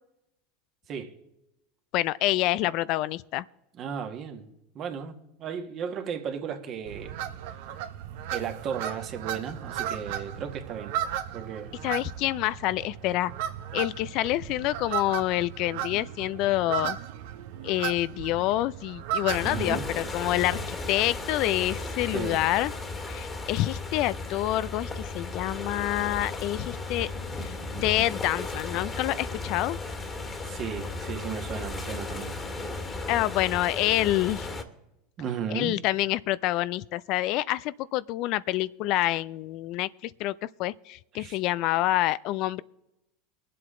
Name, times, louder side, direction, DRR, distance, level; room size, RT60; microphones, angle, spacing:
voice 1, 1.9-3.5 11.8-13.3 13.7-17.0 17.6-22.7 23.1-27.1 27.4-27.6 27.8-29.8 33.1-34.5 35.5-42.6, left 16 dB, 55° left, 0.3 m, -27 dB
voice 2, 3.7-4.5 4.7-7.2 7.5-7.6 8.3-11.0 11.3-11.8 19.4-19.9 22.0-22.4 30.4-32.4 35.2-35.8 41.1-41.4, right 7 dB, 45° right, 1.7 m, -35 dB
sound 1, 6.9-20.7, right 10 dB, 70° right, 1.0 m, -36 dB
sound 2, 19.3-34.6, left 3 dB, 25° left, 1.7 m, -35 dB
23.0 x 7.7 x 3.8 m
hypercardioid pair, 90°, 0 cm